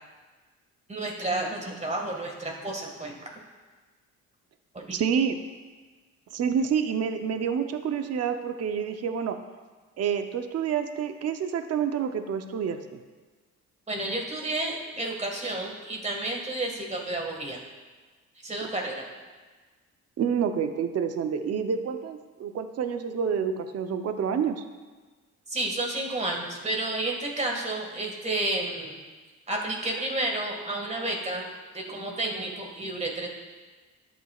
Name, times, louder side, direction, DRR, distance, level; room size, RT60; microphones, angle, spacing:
voice 1, 0.9-3.1 4.7-5.0 13.9-17.6 18.4-19.0 25.5-29.0 29.5-31.5 31.7-33.3, right 2 dB, 25° right, 0 dB, 1.8 m, -31 dB
voice 2, 4.9-5.4 6.3-9.4 10.0-13.0 20.2-24.6, right 7 dB, 55° right, 7 dB, 0.7 m, -28 dB
12.5 x 8.3 x 2.4 m, 1.4 s
cardioid pair, 90°, 30 cm